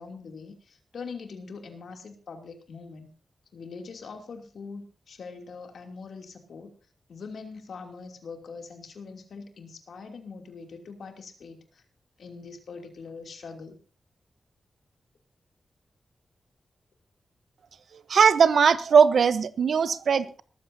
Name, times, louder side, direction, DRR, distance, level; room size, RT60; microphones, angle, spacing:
voice 1, 0.0-3.1 3.5-6.7 7.1-11.8 12.2-13.8, left 4 dB, 70° left, 4 dB, 2.8 m, -42 dB
voice 2, 18.1-20.4, right 6 dB, 65° right, 14 dB, 0.8 m, -19 dB
19.5 x 14.0 x 2.7 m, 0.38 s
wide cardioid pair, 180°, 0 cm